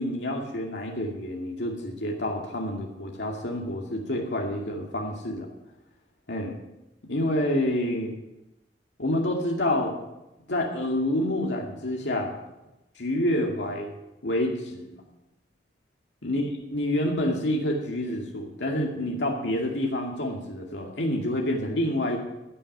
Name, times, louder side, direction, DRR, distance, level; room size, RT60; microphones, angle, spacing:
voice 1, 0.0-5.5 6.3-6.6 7.1-8.1 9.0-9.9 10.5-12.3 13.0-13.9 14.2-15.0 16.2-22.2, left 1 dB, 85° left, -1 dB, 2.3 m, -28 dB
15.5 x 6.4 x 9.2 m, 0.94 s
head